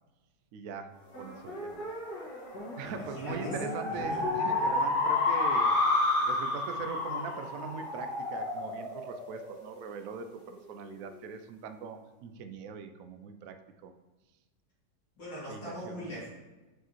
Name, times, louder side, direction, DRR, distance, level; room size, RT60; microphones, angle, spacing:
voice 1, 0.5-1.9 2.8-5.8 6.2-13.9 15.5-16.1, right 6 dB, 70° right, 7 dB, 0.8 m, -41 dB
sound 1, 1.1-10.0, left 2 dB, 60° left, 2.2 m, -31 dB
voice 2, 2.8-3.5 3.9-4.2 4.5-4.8 15.2-16.3, left 1 dB, 85° left, -9 dB, 2.7 m, -42 dB
6.6 x 4.7 x 3.0 m, 1.1 s
omnidirectional pair, 1.9 m